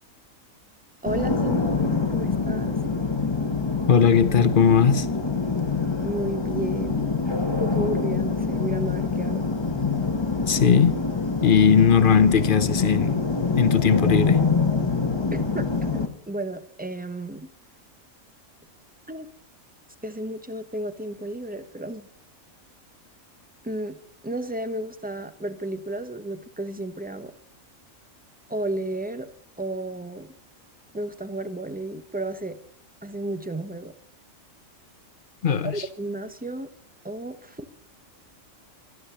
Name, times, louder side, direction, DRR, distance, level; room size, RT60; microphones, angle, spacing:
voice 1, 1.0-2.8 6.0-7.1 7.5-9.5 15.3-15.6 15.9-17.5 19.1-19.3 20.0-22.1 23.6-24.0 24.2-27.3 28.5-29.3 29.6-30.3 30.9-32.6 33.0-33.9 35.6-36.7 37.0-37.7, right 1 dB, 10° right, 0.7 m, -32 dB
sound 1, 1.1-16.1, left 4 dB, 20° left, 1.1 m, -25 dB
voice 2, 3.9-5.1 10.5-11.0 11.4-13.2 13.6-14.4 35.4-35.9, left 7 dB, 45° left, 1.0 m, -18 dB
13.0 x 12.5 x 6.8 m
omnidirectional pair, 1.4 m